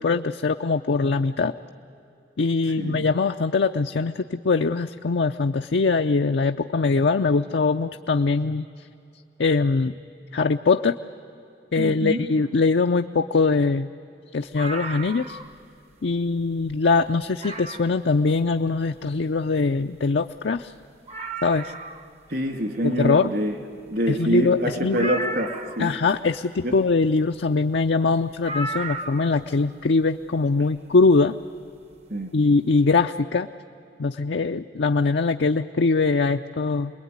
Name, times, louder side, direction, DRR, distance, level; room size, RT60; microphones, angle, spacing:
voice 1, 0.0-1.5 2.4-8.7 9.4-9.9 10.3-10.9 11.7-13.9 14.3-15.4 16.0-20.7 21.4-21.7 22.8-23.3 24.1-25.1 25.8-31.3 32.3-33.5 34.0-36.9, left 4 dB, 70° left, 6 dB, 0.5 m, -22 dB
voice 2, 11.8-12.3 22.3-23.6 23.9-25.9 26.6-26.8 32.1-32.3, equal, 60° right, 4 dB, 2.8 m, -26 dB
sound 1, 14.5-15.6 16.0-16.1 16.6-16.8 17.4-18.0 19.8-19.9 20.0-20.1 20.6-20.7 21.1-22.1 24.9-25.9 28.4-29.5 30.7-30.8, right 1 dB, 35° right, 0.9 m, -33 dB
27.5 x 21.0 x 9.6 m, 2.7 s
head